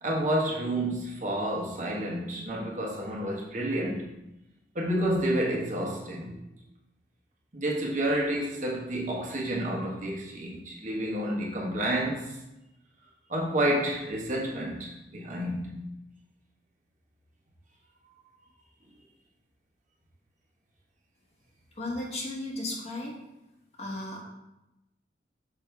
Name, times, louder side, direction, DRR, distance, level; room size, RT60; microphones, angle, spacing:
voice 1, 0.0-4.0 4.7-6.4 7.5-12.4 13.3-15.8, right 1 dB, 45° right, -2 dB, 1.3 m, -30 dB
voice 2, 21.7-23.2 23.8-24.2, left 2 dB, 35° left, -1 dB, 1.3 m, -35 dB
6.3 x 5.9 x 3.5 m, 0.93 s
head